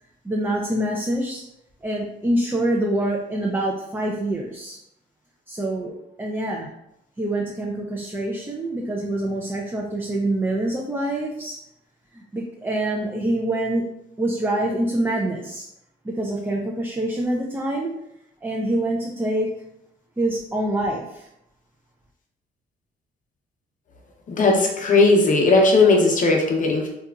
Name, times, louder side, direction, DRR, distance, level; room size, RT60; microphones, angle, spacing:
voice 1, 0.2-1.4 1.8-4.8 5.5-5.9 6.2-6.7 7.2-11.6 12.1-13.9 14.2-15.7 16.0-17.9 18.4-19.5 20.2-21.3, right 1 dB, 10° right, -2 dB, 0.3 m, -25 dB
voice 2, 24.3-26.9, left 3 dB, 40° left, 1 dB, 0.7 m, -17 dB
2.8 x 2.3 x 2.3 m, 0.80 s
cardioid pair, 90°, 20 cm